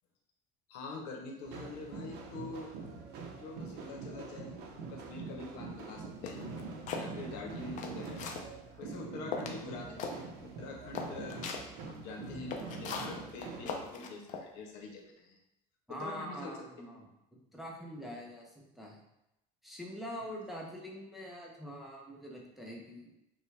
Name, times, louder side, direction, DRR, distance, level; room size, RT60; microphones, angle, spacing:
voice 1, 0.7-2.7 3.4-6.5 6.9-8.2 8.8-11.5 11.9-15.4 15.9-16.6 16.9-17.0 20.2-20.5, left 3 dB, 90° left, 1 dB, 0.9 m, -45 dB
sound 1, 1.4-13.9, right 4 dB, 70° right, 0.7 m, -44 dB
sound 2, 6.2-7.1 7.6-8.5 8.9-9.0 9.3-9.6 10.0-10.2 10.5-10.6 10.9-11.6 12.2-14.4, left 5 dB, 50° left, 0.5 m, -39 dB
voice 2, 15.9-17.1 17.5-19.0 19.6-23.1, equal, ahead, -2 dB, 0.5 m, -44 dB
5.6 x 2.2 x 3.3 m, 0.87 s
cardioid pair, 160°, 17 cm